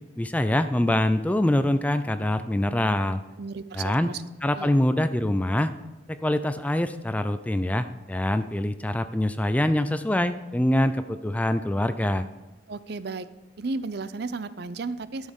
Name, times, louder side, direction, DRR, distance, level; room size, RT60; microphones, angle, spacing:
voice 1, 0.2-3.2 3.7-4.1 4.4-5.7 6.1-12.3, left 1 dB, 10° left, 11 dB, 0.3 m, -24 dB
voice 2, 3.4-4.2 4.6-4.8 12.7-13.3 13.6-15.3, right 3 dB, 60° right, 14 dB, 0.5 m, -34 dB
13.0 x 6.4 x 5.2 m, 1.1 s
head